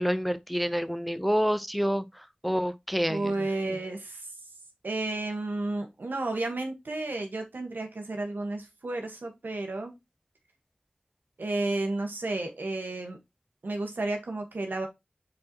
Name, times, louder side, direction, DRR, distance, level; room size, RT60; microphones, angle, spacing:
voice 1, 0.0-2.0 2.4-3.3 3.7-3.8, equal, ahead, 0.6 m, -27 dB
voice 2, 3.1-4.3 4.8-9.9 11.4-13.2 13.6-14.9, right 2 dB, 90° right, 1.4 m, -32 dB
7.5 x 4.3 x 3.0 m
wide cardioid pair, 45°, 3 cm